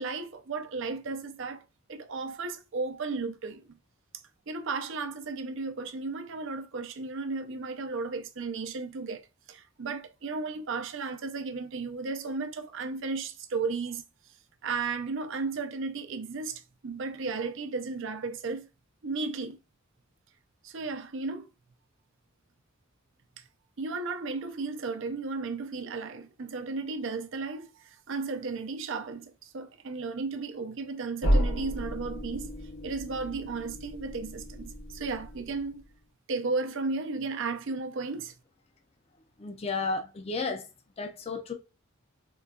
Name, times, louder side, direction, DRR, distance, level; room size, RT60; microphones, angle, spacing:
voice 1, 0.0-1.6 1.9-3.7 4.5-9.2 9.5-14.0 14.6-18.7 19.0-19.6 20.6-21.5 23.4-23.5 23.8-32.5 32.8-35.8 36.3-38.3, right 4 dB, 65° right, 0.5 m, -34 dB
sound 1, 31.2-35.9, equal, 70° left, 0.9 m, -32 dB
voice 2, 39.4-40.7 41.0-41.5, left 3 dB, 30° left, 0.5 m, -33 dB
3.8 x 2.3 x 2.2 m
head